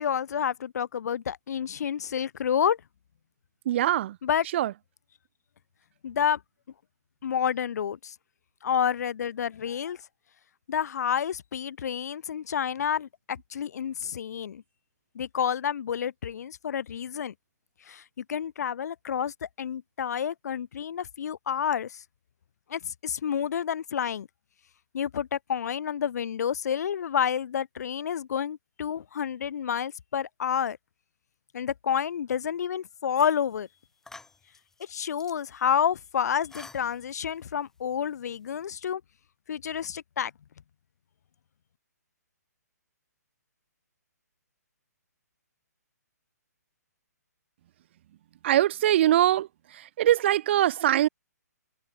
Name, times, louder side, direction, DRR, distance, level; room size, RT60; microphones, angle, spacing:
voice 1, 0.0-2.8 4.2-4.4 6.0-6.4 7.2-8.1 8.6-10.0 10.7-14.6 15.2-17.3 17.9-22.0 22.7-24.3 24.9-30.8 31.5-33.7 34.9-39.0 39.5-40.3, left 8 dB, 65° left, 0.4 m, -29 dB
voice 2, 3.6-4.2 4.5-4.7 48.4-51.1, right 12 dB, 40° right, 1.0 m, -23 dB
sound 1, 33.1-33.6 34.0-35.5 36.2-37.4, left 3 dB, 5° left, 1.9 m, -50 dB
hypercardioid pair, 155°, 9 cm